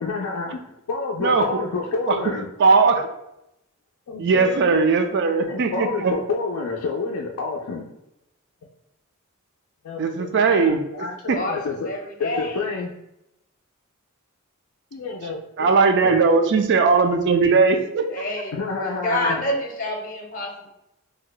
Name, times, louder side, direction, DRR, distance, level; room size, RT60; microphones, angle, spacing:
voice 1, 0.0-2.5 4.1-5.0 5.5-7.9 9.8-11.9 12.2-12.9 14.9-15.7 16.0-16.1 18.5-19.4, left 4 dB, 80° left, -1 dB, 0.4 m, -29 dB
voice 2, 2.6-3.1 4.2-6.1 10.0-10.9 11.3-11.4 15.6-18.2, right 4 dB, 55° right, 6 dB, 0.4 m, -19 dB
voice 3, 11.4-12.6 18.1-20.7, left 1 dB, 40° left, 0 dB, 0.7 m, -28 dB
2.8 x 2.1 x 3.8 m, 0.85 s
head